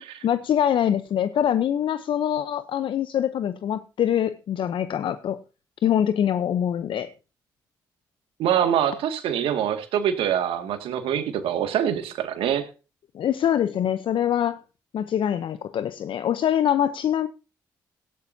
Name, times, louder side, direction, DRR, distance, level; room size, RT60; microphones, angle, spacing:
voice 1, 0.2-5.4 5.8-7.1 13.1-14.6 14.9-17.3, left 10 dB, 65° left, 0.7 m, -24 dB
voice 2, 8.4-12.7, right 9 dB, 75° right, 2.1 m, -24 dB
17.0 x 11.5 x 2.8 m
hypercardioid pair, 45°, 9 cm